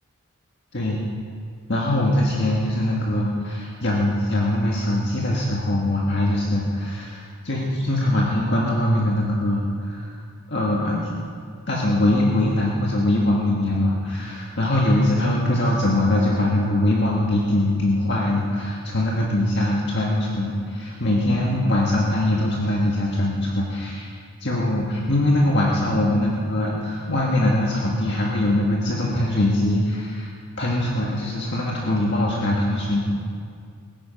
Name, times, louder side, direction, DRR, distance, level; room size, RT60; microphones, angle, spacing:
voice 1, 0.7-1.1 1.7-10.2 10.5-11.1 11.7-24.1 24.4-30.3 30.6-33.1, left 1 dB, 50° left, -3 dB, 1.8 m, -22 dB
21.5 x 9.3 x 5.7 m, 2.2 s
head